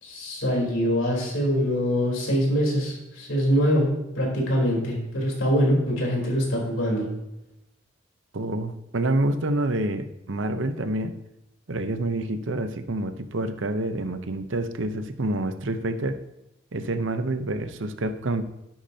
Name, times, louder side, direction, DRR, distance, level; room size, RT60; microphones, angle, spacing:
voice 1, 0.0-7.1, equal, 70° left, -2 dB, 3.8 m, -24 dB
voice 2, 8.3-11.1 11.7-16.2 16.7-18.4, right 2 dB, 65° right, 9 dB, 0.8 m, -27 dB
12.0 x 10.5 x 2.8 m, 0.90 s
head